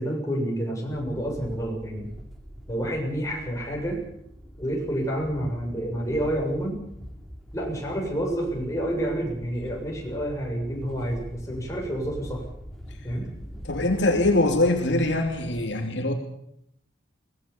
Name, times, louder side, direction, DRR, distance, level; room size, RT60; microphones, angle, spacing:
voice 1, 0.0-2.1 2.7-4.0 4.6-6.8 7.5-12.4 13.0-13.3, right 1 dB, 15° left, -1 dB, 7.1 m, -29 dB
sound 1, 0.9-15.6, equal, ahead, 3.6 m, -43 dB
voice 2, 13.6-16.1, left 2 dB, 65° left, 3 dB, 2.9 m, -23 dB
23.0 x 19.0 x 7.1 m, 0.75 s
head